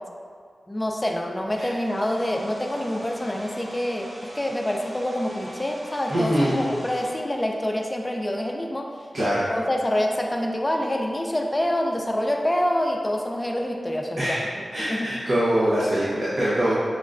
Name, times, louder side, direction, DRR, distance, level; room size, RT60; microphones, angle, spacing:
voice 1, 0.7-8.9 9.5-14.4 14.9-15.1, left 1 dB, 20° left, 1 dB, 0.4 m, -26 dB
Domestic sounds home sounds, 1.5-7.1, equal, 45° right, 1.4 m, -43 dB
voice 2, 6.1-6.7 9.1-9.5 14.2-14.4 14.7-16.7, equal, 80° right, -11 dB, 0.8 m, -23 dB
6.2 x 2.1 x 2.4 m, 2.1 s
cardioid pair, 50°, 0 cm